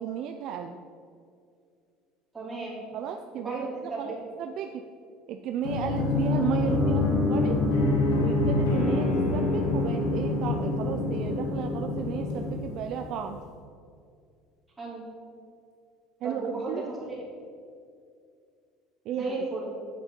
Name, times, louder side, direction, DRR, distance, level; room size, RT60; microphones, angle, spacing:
voice 1, 0.0-0.8 2.9-4.9 5.3-7.6 8.2-13.4 16.2-16.8 19.1-19.3, right 8 dB, 45° right, 5 dB, 0.4 m, -34 dB
voice 2, 2.3-2.8 3.3-4.2 8.9-9.1 14.8-15.0 16.2-17.2 19.1-19.7, right 3 dB, 10° right, -6 dB, 2.8 m, -35 dB
sound 1, 5.6-13.2, left 2 dB, 85° left, 2.0 m, -26 dB
10.0 x 8.2 x 4.4 m, 2.3 s
cardioid pair, 170°, 0 cm